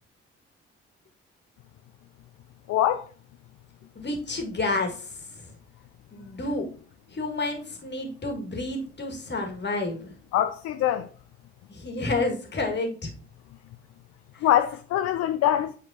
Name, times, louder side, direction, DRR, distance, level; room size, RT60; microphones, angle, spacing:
voice 1, 2.7-3.0 10.3-11.1 14.4-15.7, left 11 dB, 50° left, 0.5 m, -23 dB
voice 2, 4.0-5.5 6.1-6.7 7.1-10.1 11.7-13.1 14.3-14.5, left 2 dB, 35° left, 1.7 m, -30 dB
8.5 x 4.3 x 2.7 m
figure-of-eight pair, 40°, 33 cm